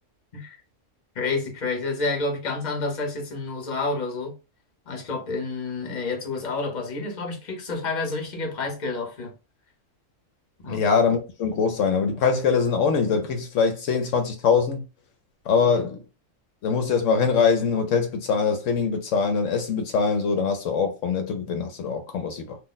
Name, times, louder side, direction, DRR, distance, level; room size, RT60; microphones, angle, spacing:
voice 1, 1.1-4.3 4.9-9.3 10.6-10.8 15.8-15.9, left 3 dB, 40° left, 0.9 m, -29 dB
voice 2, 10.7-14.8 15.5-16.0 16.6-22.6, left 5 dB, 75° left, 0.9 m, -23 dB
2.4 x 2.1 x 3.9 m
omnidirectional pair, 1.3 m